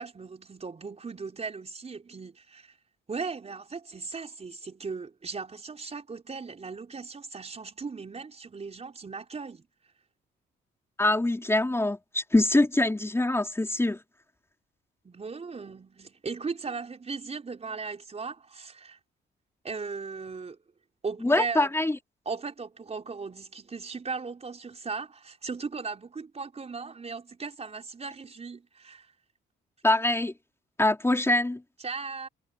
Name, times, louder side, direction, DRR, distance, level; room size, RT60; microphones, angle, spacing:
voice 1, 0.0-2.7 3.1-9.7 15.0-19.0 19.6-20.6 21.0-21.7 22.2-29.1 31.8-32.3, right 4 dB, 30° right, 4.7 m, -37 dB
voice 2, 11.0-14.0 21.2-22.0 29.8-30.3 30.8-31.6, left 2 dB, 15° left, 3.7 m, -24 dB
cardioid pair, 90°, 20 cm